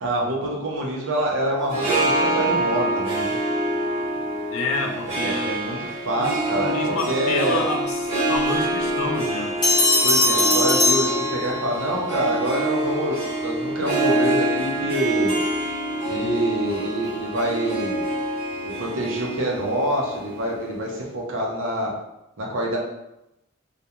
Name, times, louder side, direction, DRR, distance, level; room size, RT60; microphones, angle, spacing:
voice 1, 0.0-3.4 5.0-5.8 6.0-7.6 10.0-15.4 16.1-18.0 18.6-21.9 22.4-22.8, right 1 dB, 60° right, -2 dB, 0.6 m, -26 dB
Harp, 1.6-20.9, right 1 dB, 25° right, 0.8 m, -26 dB
voice 2, 4.5-5.6 6.2-9.6, left 3 dB, 65° left, 2 dB, 0.4 m, -29 dB
sound 1, 9.6-11.9, left 2 dB, 20° left, 0.7 m, -20 dB
2.4 x 2.2 x 2.8 m, 0.88 s
head